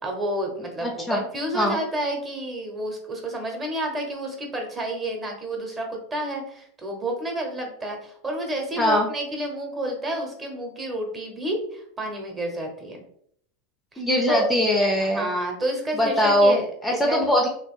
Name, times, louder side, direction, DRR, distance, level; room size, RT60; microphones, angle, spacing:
voice 1, 0.0-13.0 13.9-14.0 14.3-14.5 15.0-17.2, right 1 dB, 20° right, 1 dB, 0.9 m, -30 dB
voice 2, 0.8-1.2 1.5-1.8 8.8-9.1 14.0-15.3 16.0-17.5, equal, 10° left, 0 dB, 0.5 m, -21 dB
2.9 x 2.3 x 3.7 m, 0.67 s
supercardioid pair, 130°, 0 cm